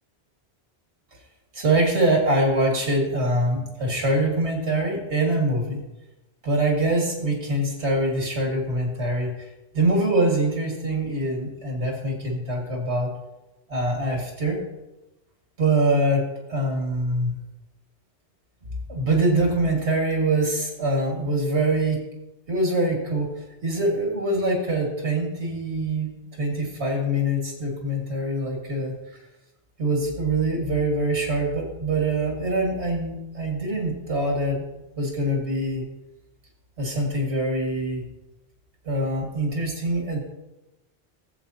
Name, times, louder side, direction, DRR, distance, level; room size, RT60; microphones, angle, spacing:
voice 1, 1.5-5.8 6.4-9.3 9.7-13.1 13.7-14.6 15.6-16.2 16.5-17.3 18.9-22.0 22.5-26.1 26.4-29.0 29.8-34.7 35.0-35.8 36.8-38.0 38.8-40.2, right 1 dB, 85° right, 0 dB, 2.4 m, -24 dB
14.5 x 7.6 x 2.8 m, 0.97 s
omnidirectional pair, 1.1 m